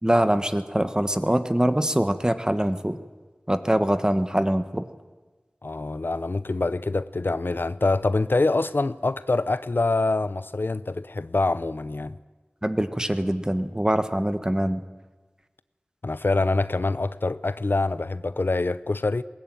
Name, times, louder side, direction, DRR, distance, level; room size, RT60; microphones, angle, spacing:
voice 1, 0.0-3.0 3.5-4.9 12.6-14.8, right 1 dB, 20° right, 1.4 m, -23 dB
voice 2, 5.6-12.1 16.0-19.2, left 2 dB, 75° left, 0.6 m, -25 dB
20.5 x 19.0 x 9.1 m
wide cardioid pair, 45°, 4 cm